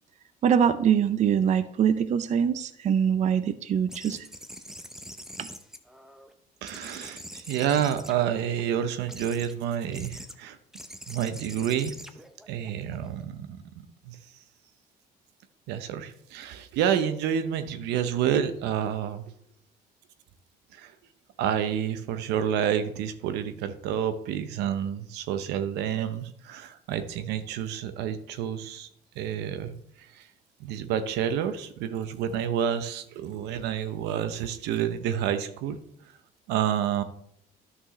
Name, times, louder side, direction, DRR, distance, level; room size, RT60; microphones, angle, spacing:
voice 1, 0.4-4.3 5.4-5.5, right 8 dB, 45° right, 13 dB, 0.5 m, -23 dB
sound 1, 3.9-6.3 6.7-8.6 9.1-9.5 9.9-10.3 10.7-13.2, equal, 5° right, 0.7 m, -44 dB
voice 2, 6.6-10.6 11.1-11.9 12.5-13.6 14.1-14.2 15.7-19.3 20.7-20.9 21.4-28.9 29.2-30.2 30.6-35.8 36.5-37.0, right 9 dB, 90° right, 11 dB, 0.7 m, -29 dB
11.0 x 6.2 x 3.1 m, 0.70 s
cardioid pair, 110°, 17 cm